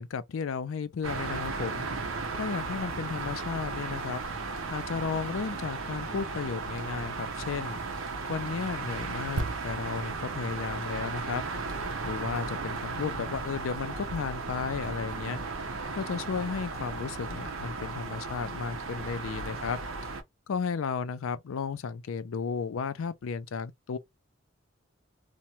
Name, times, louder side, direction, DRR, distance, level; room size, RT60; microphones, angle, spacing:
voice 1, 0.0-1.9 2.3-4.2 4.7-7.8 8.3-11.4 12.0-15.4 15.9-19.8 20.5-24.0, left 5 dB, 80° left, 0.4 m, -34 dB
sound 1, 1.0-20.2, right 4 dB, 90° right, 0.8 m, -35 dB
sound 2, 9.4-13.0 13.3-13.5, right 2 dB, 65° right, 0.5 m, -40 dB
3.0 x 2.2 x 2.6 m
head